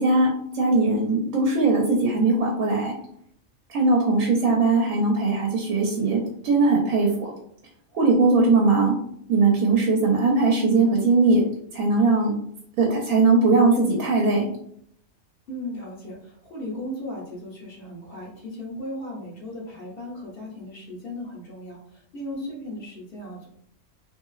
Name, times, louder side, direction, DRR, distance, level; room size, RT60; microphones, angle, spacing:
voice 1, 0.0-3.0 3.7-7.3 7.9-9.0 9.3-11.4 11.7-12.3 12.8-14.5 22.3-22.5, right 3 dB, 80° right, -1 dB, 1.0 m, -20 dB
voice 2, 15.5-23.5, left 1 dB, 55° left, -6 dB, 0.8 m, -37 dB
2.9 x 2.6 x 2.3 m, 0.68 s
omnidirectional pair, 1.4 m